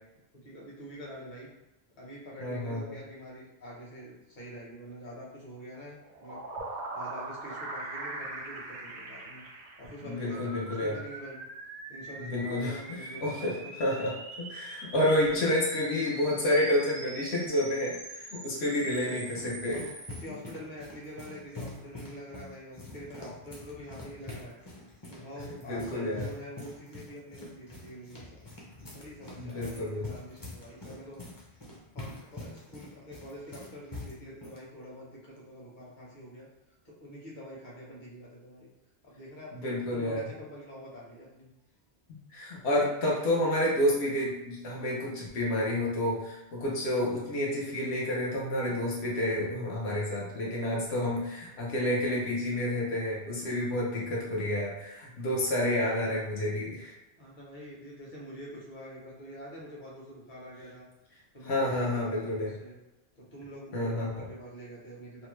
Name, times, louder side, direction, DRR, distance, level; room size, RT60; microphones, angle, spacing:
voice 1, 0.3-1.5 2.0-6.4 6.9-9.4 9.8-11.4 11.9-14.1 18.4-19.4 19.7-24.6 25.1-28.4 28.9-31.3 31.9-36.5 36.8-38.7 39.0-41.5 57.2-60.9 61.3-62.8 63.2-65.3, equal, 50° left, -5 dB, 1.0 m, -46 dB
voice 2, 2.4-3.0 10.0-11.0 12.2-12.8 13.2-14.1 14.4-19.8 25.7-26.3 29.4-30.1 39.5-40.2 42.1-56.9 61.4-62.5 63.7-64.1, left 1 dB, 90° left, -4 dB, 1.0 m, -29 dB
sound 1, 6.0-10.4, right 2 dB, 55° right, 0.5 m, -40 dB
sound 2, 10.3-20.2, right 2 dB, 80° right, 0.9 m, -44 dB
sound 3, 18.9-34.6, left 2 dB, 25° left, 0.5 m, -45 dB
2.7 x 2.1 x 3.0 m, 0.96 s
omnidirectional pair, 1.1 m